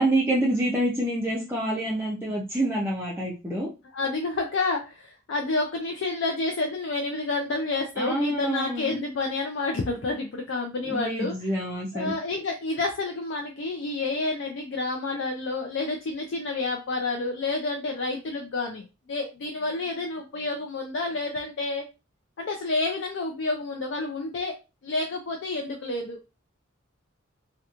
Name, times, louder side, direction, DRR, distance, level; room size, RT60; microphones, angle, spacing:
voice 1, 0.0-3.7 8.0-9.0 10.9-12.1, right 1 dB, 10° right, -4 dB, 0.5 m, -27 dB
voice 2, 3.9-11.6 11.9-21.8 22.4-24.5 24.8-26.3, left 3 dB, 65° left, 2 dB, 0.4 m, -29 dB
2.8 x 2.2 x 2.4 m, 0.28 s
head